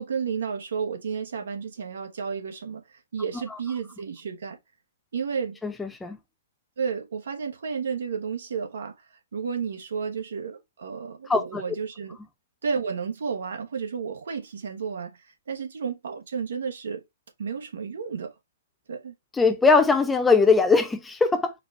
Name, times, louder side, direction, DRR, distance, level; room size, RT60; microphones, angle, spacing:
voice 1, 0.0-4.6 5.1-5.6 6.8-8.9 9.3-12.2 12.6-17.0 17.4-18.3 18.9-19.1, right 6 dB, 70° right, 1.2 m, -32 dB
voice 2, 5.6-6.2 11.3-11.6 19.3-21.5, left 4 dB, 10° left, 0.8 m, -20 dB
4.7 x 2.4 x 4.5 m
figure-of-eight pair, 115°, 0 cm